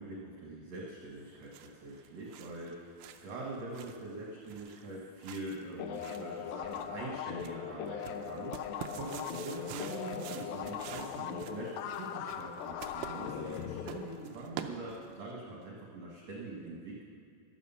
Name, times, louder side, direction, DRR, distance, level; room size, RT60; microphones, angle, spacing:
voice 1, 0.0-2.7 3.2-17.0, right 2 dB, 55° right, -3 dB, 2.1 m, -43 dB
sound 1, 1.1-15.3, right 9 dB, 90° right, 1.9 m, -49 dB
sound 2, 5.8-14.9, left 8 dB, 80° left, 2.1 m, -40 dB
14.0 x 11.5 x 5.6 m, 2.3 s
omnidirectional pair, 4.6 m